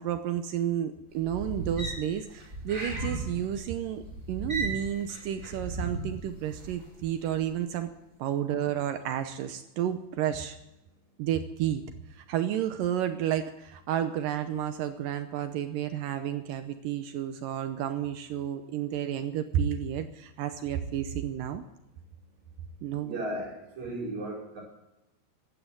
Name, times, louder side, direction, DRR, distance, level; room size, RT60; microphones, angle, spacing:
voice 1, 0.0-4.0 4.3-7.9 8.2-10.6 11.2-11.8 12.1-21.6 22.8-23.2, right 10 dB, 80° right, 9 dB, 2.1 m, -31 dB
sound 1, 1.1-6.9 7.2-7.5, right 2 dB, 20° right, 6.3 m, -36 dB
voice 2, 23.0-24.6, right 1 dB, 45° right, -2 dB, 5.8 m, -35 dB
15.5 x 12.0 x 7.7 m, 0.95 s
omnidirectional pair, 4.7 m